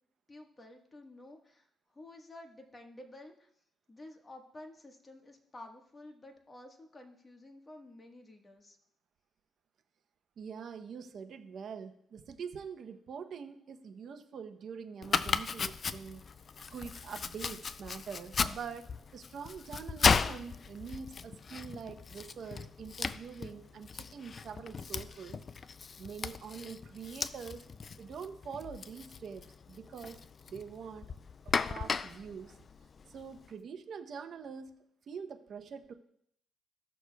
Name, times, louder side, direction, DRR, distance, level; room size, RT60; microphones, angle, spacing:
voice 1, 0.3-3.5 3.9-8.8, left 1 dB, 25° left, 3 dB, 1.4 m, -52 dB
voice 2, 10.4-16.2 16.7-25.4 26.0-27.6 28.0-30.2 30.4-31.1 31.4-32.6 33.1-34.7 35.1-35.9, right 6 dB, 60° right, 8 dB, 0.7 m, -44 dB
Domestic sounds home sounds, 15.0-33.5, left 5 dB, 40° left, 0.3 m, -36 dB
15.5 x 6.4 x 2.3 m, 0.70 s
cardioid pair, 90°, 0 cm